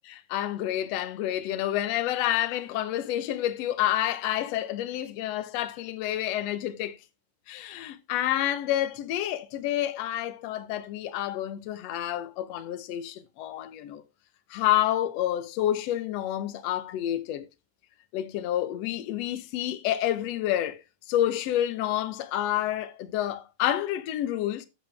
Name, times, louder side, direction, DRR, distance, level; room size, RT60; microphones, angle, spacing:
voice 1, 0.1-7.0 7.5-14.0 14.5-17.5 18.1-20.8 21.1-24.7, left 12 dB, 65° left, 1.8 m, -29 dB
8.8 x 8.1 x 3.4 m
omnidirectional pair, 3.7 m